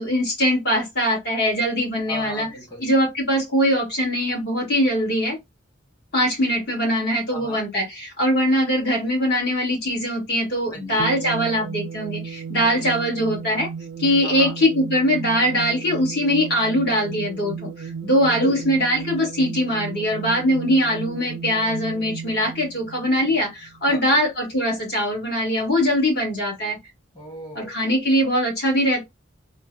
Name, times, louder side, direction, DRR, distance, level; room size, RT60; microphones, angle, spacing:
voice 1, 0.0-2.5 2.8-5.4 6.1-13.7 14.0-26.8 27.5-29.0, equal, 55° left, 1.4 m, -22 dB
voice 2, 2.1-2.9 7.3-7.6 10.7-11.1 12.6-13.0 14.2-14.5 18.2-18.6 23.9-24.2 27.1-27.8, equal, 20° left, 1.2 m, -35 dB
sound 1, 11.0-23.8, right 6 dB, 50° right, 0.4 m, -34 dB
3.7 x 2.1 x 2.5 m
head